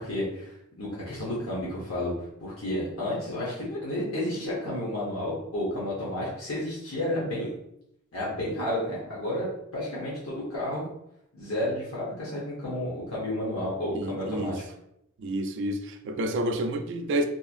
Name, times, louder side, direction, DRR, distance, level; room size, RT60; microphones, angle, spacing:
voice 1, 0.0-2.1 2.4-7.5 8.1-10.8 11.3-14.6, left 1 dB, 85° left, 0.8 m, -31 dB
voice 2, 13.9-14.6 15.2-17.3, right 1 dB, 60° right, 0.3 m, -29 dB
2.8 x 2.5 x 2.4 m
head